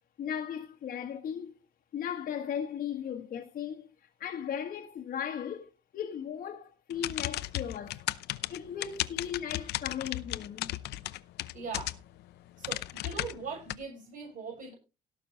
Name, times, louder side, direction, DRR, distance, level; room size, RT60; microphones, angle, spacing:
voice 1, 0.2-1.5 1.9-8.0 8.5-10.7, left 8 dB, 55° left, 1.6 m, -37 dB
sound 1, 6.9-12.2 12.6-13.8, left 16 dB, 80° left, 0.7 m, -35 dB
voice 2, 11.5-12.0 12.6-14.7, right 5 dB, 50° right, 6.6 m, -40 dB
17.5 x 6.6 x 4.0 m
cardioid pair, 110°, 17 cm